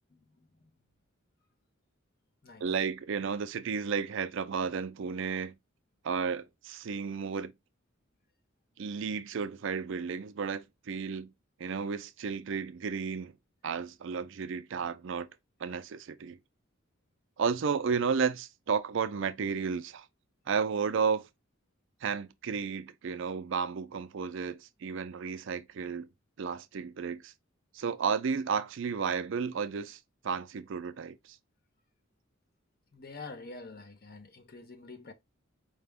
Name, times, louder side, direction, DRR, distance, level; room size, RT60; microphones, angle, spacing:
voice 1, 0.1-0.7 2.4-2.7 32.9-35.1, left 3 dB, 50° left, 0.8 m, -47 dB
voice 2, 2.6-5.5 6.0-7.5 8.8-11.3 11.6-13.3 13.6-15.3 15.6-16.4 17.4-20.1 20.5-21.3 22.0-26.1 26.4-27.3 27.7-31.4, right 6 dB, 65° right, 0.4 m, -33 dB
4.9 x 2.2 x 3.4 m
head